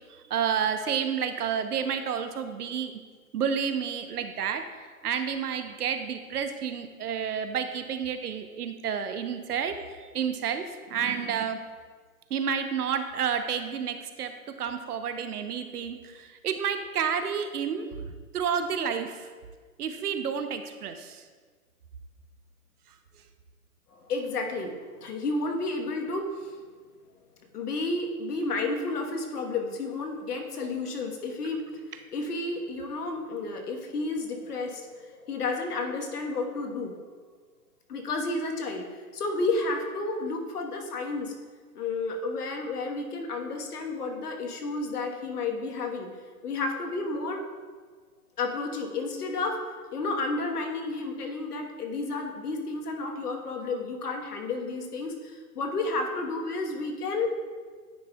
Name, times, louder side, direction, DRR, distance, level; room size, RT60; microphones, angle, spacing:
voice 1, 0.3-2.9 3.3-4.6 5.0-9.8 10.1-11.6 12.3-14.3 14.6-17.9 18.3-19.2 19.8-21.2, right 7 dB, 85° right, 8 dB, 0.8 m, -30 dB
voice 2, 23.9-26.5 27.5-31.7 32.1-37.0 37.9-41.3 41.7-46.1 46.4-47.5 48.4-49.6 49.9-57.3, left 3 dB, 85° left, 3 dB, 1.3 m, -31 dB
9.8 x 5.4 x 2.3 m, 1.5 s
hypercardioid pair, 165°, 45 cm